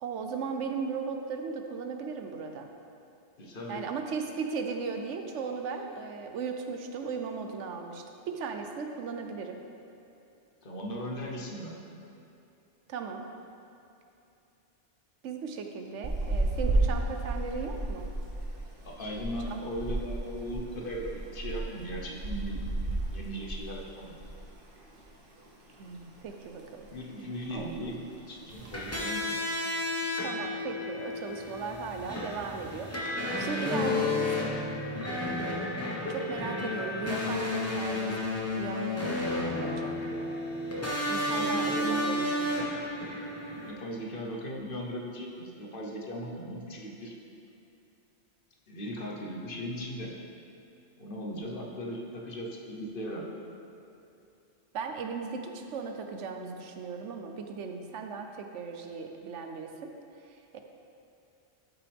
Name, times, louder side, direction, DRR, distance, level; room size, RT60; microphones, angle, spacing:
voice 1, 0.0-2.7 3.7-9.6 12.9-13.3 15.2-18.1 19.5-19.6 25.8-26.9 27.5-27.7 30.2-34.3 36.1-38.2 38.5-39.9 41.1-42.7 54.7-59.9 60.5-60.6, right 5 dB, 85° right, 4 dB, 1.1 m, -37 dB
voice 2, 3.4-3.8 10.6-11.7 16.8-17.0 18.8-22.6 23.0-24.1 26.9-29.4 41.3-42.0 43.5-47.1 48.7-50.1 51.0-53.3, equal, 50° left, -2 dB, 1.2 m, -38 dB
sound 1, 16.0-24.6 24.8-25.0 25.4-26.3 26.6-27.0 27.2-27.3 27.5-27.9 28.5-29.0, right 2 dB, 50° right, 1.2 m, -33 dB
sound 2, 28.5-43.7, left 1 dB, 15° left, 1.2 m, -32 dB
sound 3, 33.7-38.6, left 3 dB, 85° left, 1.8 m, -39 dB
12.5 x 6.0 x 3.5 m, 2.7 s
omnidirectional pair, 1.2 m